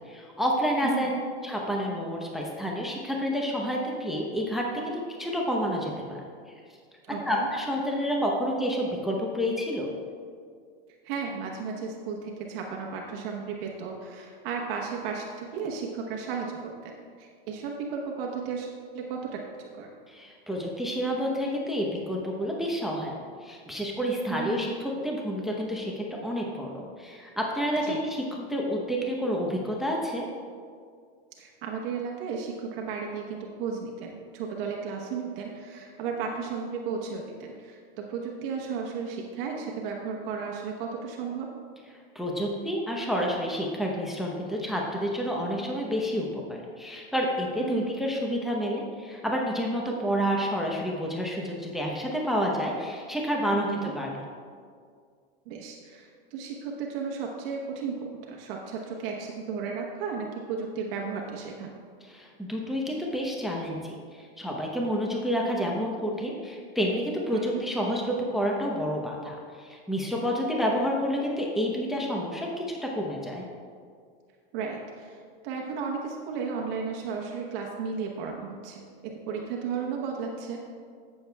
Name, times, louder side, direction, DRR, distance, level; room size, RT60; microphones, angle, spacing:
voice 1, 0.0-4.9 5.2-6.2 7.2-9.9 20.1-23.1 23.4-30.3 42.1-54.1 62.1-73.4, equal, ahead, -1 dB, 0.8 m, -29 dB
voice 2, 7.1-7.5 11.0-16.9 17.2-18.7 18.9-19.3 19.6-19.9 24.3-24.8 27.8-28.0 31.4-41.5 47.6-47.9 53.5-53.9 55.5-61.7 67.3-67.6 74.5-80.6, right 5 dB, 65° right, 0 dB, 1.1 m, -34 dB
14.0 x 6.9 x 2.3 m, 2.1 s
supercardioid pair, 120°, 31 cm